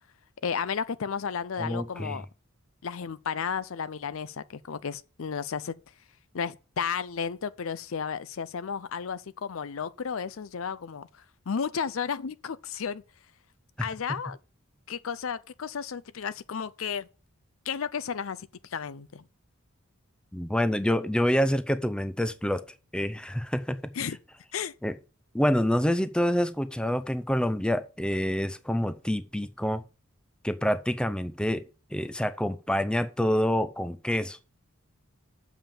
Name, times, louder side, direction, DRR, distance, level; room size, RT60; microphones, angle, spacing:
voice 1, 0.4-2.3 2.8-5.7 6.3-13.0 13.8-14.4 14.9-17.1 17.7-19.2 23.9-24.2 24.5-24.7, left 6 dB, 65° left, 0.5 m, -33 dB
voice 2, 1.6-2.2 20.3-22.6 22.9-23.8 24.8-25.0 25.3-29.8 30.4-31.6 31.9-34.4, equal, 5° left, 0.5 m, -27 dB
7.2 x 5.7 x 7.0 m
head